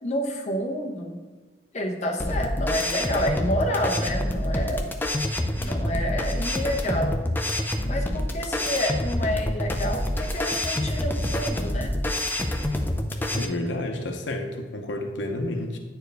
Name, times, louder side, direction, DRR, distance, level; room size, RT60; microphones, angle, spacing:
voice 1, 0.0-1.2 1.7-4.9 5.6-7.2 7.8-11.9, equal, 40° left, 1 dB, 0.8 m, -29 dB
sound 1, 2.2-13.4, left 1 dB, 10° left, 0.4 m, -27 dB
voice 2, 13.3-15.8, left 1 dB, 85° left, 4 dB, 0.7 m, -30 dB
9.1 x 4.5 x 3.3 m, 1.3 s
head